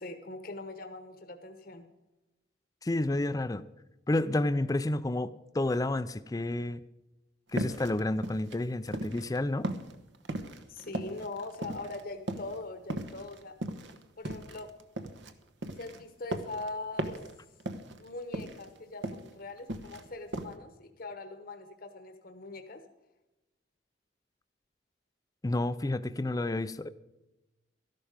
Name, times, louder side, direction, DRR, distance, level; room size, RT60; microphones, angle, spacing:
voice 1, 0.0-1.9 10.7-13.6 14.2-14.7 15.8-17.2 18.0-22.8, left 2 dB, 50° left, 8 dB, 1.1 m, -42 dB
voice 2, 2.8-3.6 4.1-6.8 7.5-9.7 25.4-26.9, left 2 dB, 20° left, 14 dB, 0.4 m, -30 dB
sound 1, 7.6-9.4 9.6-12.0 12.3-12.6 12.9-15.3 15.6-16.7 17.0-17.3 17.6-18.1 18.3-19.3 19.6-20.1 20.3-20.5, right 1 dB, 75° right, 1.1 m, -37 dB
13.0 x 11.5 x 5.1 m, 1.0 s
head